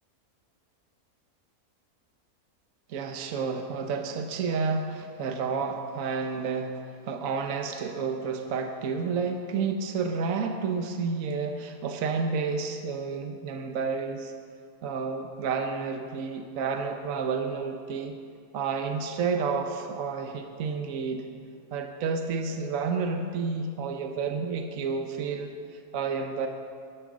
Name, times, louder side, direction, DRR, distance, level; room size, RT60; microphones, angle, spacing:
voice 1, 2.9-14.3 14.8-18.1 18.5-21.2 21.7-26.5, right 5 dB, 65° right, 5 dB, 1.3 m, -30 dB
11.5 x 11.0 x 6.2 m, 2.1 s
omnidirectional pair, 1.5 m